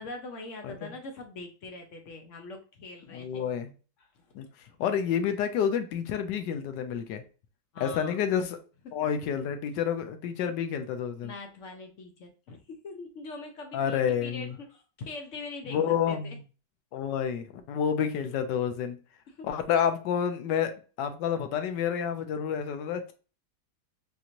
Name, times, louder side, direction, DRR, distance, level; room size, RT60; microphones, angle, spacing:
voice 1, 0.0-3.5 4.0-4.3 4.7-4.8 7.7-8.2 8.8-9.0 11.2-16.4 19.3-19.5, left 3 dB, 65° left, 4 dB, 0.7 m, -43 dB
voice 2, 3.1-3.7 4.3-4.5 4.8-7.2 7.8-8.6 8.9-11.3 13.7-14.6 15.7-16.4 16.9-19.0 19.4-20.7 21.0-23.1, left 8 dB, 85° left, 8 dB, 1.3 m, -29 dB
4.1 x 2.9 x 2.5 m, 0.35 s
omnidirectional pair, 1.9 m